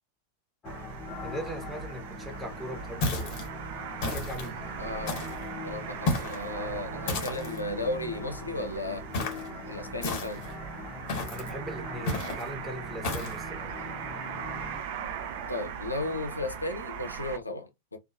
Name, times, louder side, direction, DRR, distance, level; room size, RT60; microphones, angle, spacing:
sound 1, 0.6-14.8, left 3 dB, 25° left, 0.5 m, -43 dB
sound 2, 0.6-17.4, right 7 dB, 50° right, 0.4 m, -40 dB
voice 1, 1.2-3.3 4.1-4.6 11.3-13.7, equal, ahead, 0.9 m, -39 dB
sound 3, 3.0-3.5 4.0-4.5 5.1-5.5 6.0-6.4 7.1-7.6 9.1-9.5 10.0-10.5 11.1-11.5 12.1-12.4 13.0-13.4, left 2 dB, 45° left, 1.1 m, -32 dB
voice 2, 4.8-5.2 5.6-9.1 9.7-10.4 15.5-18.0, left 2 dB, 80° left, 0.5 m, -34 dB
2.7 x 2.1 x 2.5 m
figure-of-eight pair, 90°, 0 cm